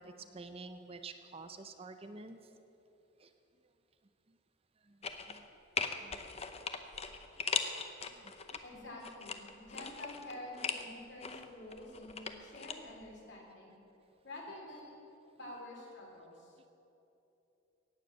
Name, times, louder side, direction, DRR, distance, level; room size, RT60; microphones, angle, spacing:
voice 1, 0.0-2.4 3.2-3.3 4.9-5.0 5.3-5.4 6.0-6.2 7.5-7.6 8.1-8.2 8.5-8.6 15.4-15.5, right 3 dB, 30° right, 8 dB, 0.6 m, -49 dB
sound 1, 5.0-5.5 5.8-8.6 9.0-10.9 11.2-12.8 13.0-13.1, left 5 dB, 30° left, 0.7 m, -39 dB
voice 2, 8.6-13.8 14.2-15.0 15.4-16.6, left 1 dB, 55° left, -1 dB, 3.2 m, -48 dB
18.0 x 7.4 x 7.8 m, 2.9 s
head